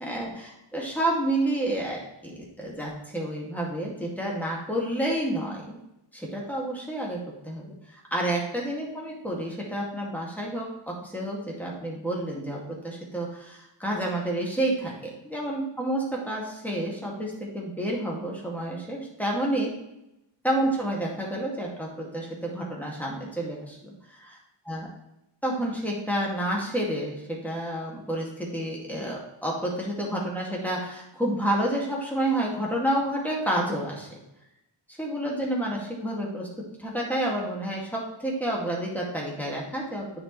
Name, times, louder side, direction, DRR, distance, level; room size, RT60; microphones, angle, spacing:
voice 1, 0.7-2.3 2.6-5.8 6.1-12.6 12.8-19.7 20.4-23.8 24.1-24.4 24.7-24.9 25.4-34.2 35.0-36.5 36.8-40.0, right 1 dB, 5° left, -4 dB, 2.2 m, -29 dB
9.7 x 4.8 x 3.2 m, 0.87 s
wide cardioid pair, 60°, 49 cm